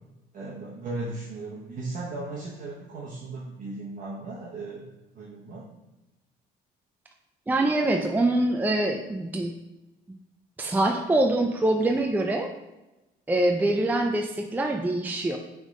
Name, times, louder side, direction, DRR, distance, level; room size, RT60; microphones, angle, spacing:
voice 1, 0.3-5.6, right 2 dB, 55° right, -4 dB, 1.1 m, -37 dB
voice 2, 7.5-9.5 10.6-12.5 13.3-15.4, right 2 dB, 10° right, 3 dB, 0.4 m, -24 dB
6.0 x 3.6 x 5.3 m, 1.0 s
cardioid pair, 110°, 17 cm